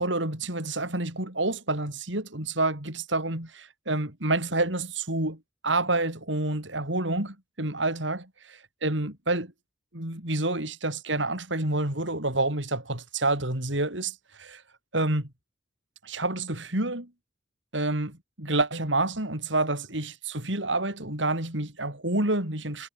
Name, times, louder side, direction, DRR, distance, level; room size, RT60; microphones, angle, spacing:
voice 1, 0.0-5.4 5.6-9.5 9.9-14.6 14.9-15.3 16.0-17.1 17.7-22.9, right 2 dB, 70° right, 5.6 m, -28 dB
head